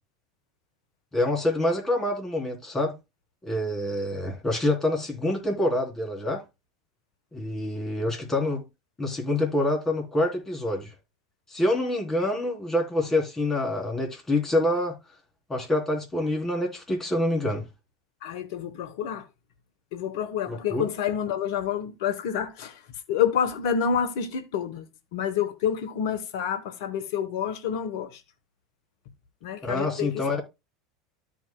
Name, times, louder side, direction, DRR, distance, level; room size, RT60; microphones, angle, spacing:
voice 1, 1.1-2.9 3.4-6.4 7.3-8.6 9.0-10.9 11.5-15.0 15.5-17.7 20.5-20.8 29.6-30.4, left 1 dB, 20° left, 3.5 m, -26 dB
voice 2, 18.2-19.3 19.9-22.8 23.1-28.2 29.4-30.4, left 8 dB, 65° left, 1.1 m, -28 dB
13.0 x 5.3 x 2.2 m
hypercardioid pair, 85°, 2 cm